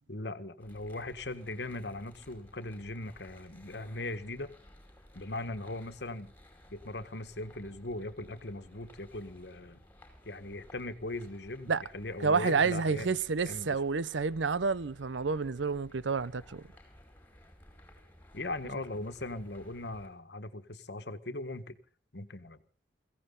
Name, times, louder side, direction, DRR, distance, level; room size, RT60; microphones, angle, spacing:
voice 1, 0.1-4.5 5.1-6.3 6.7-9.8 10.2-13.2 13.5-13.8 18.3-21.8 22.1-22.6, left 2 dB, 65° left, 1.5 m, -39 dB
sound 1, 0.6-20.1, left 1 dB, 10° left, 5.1 m, -57 dB
voice 2, 12.2-16.7, right 4 dB, 90° right, 0.7 m, -29 dB
23.0 x 16.5 x 3.9 m
head